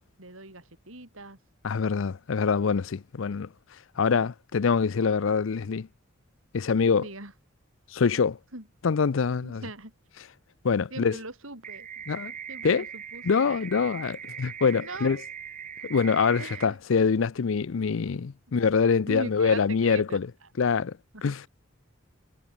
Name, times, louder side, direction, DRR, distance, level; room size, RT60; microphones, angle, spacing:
voice 1, 0.2-1.4 7.0-7.3 8.5-8.7 9.4-9.9 10.9-11.9 12.5-13.7 14.8-15.2 16.4-16.8 19.1-20.2 21.1-21.5, right 2 dB, 75° right, 7.0 m, -40 dB
voice 2, 1.6-5.9 6.5-7.1 7.9-8.4 8.8-9.6 10.6-11.2 12.1-12.3 12.6-12.8 13.2-15.2 15.8-20.3 20.6-21.0 21.2-21.4, left 5 dB, 70° left, 0.5 m, -25 dB
sound 1, 11.6-16.6, right 8 dB, 35° right, 1.9 m, -40 dB
head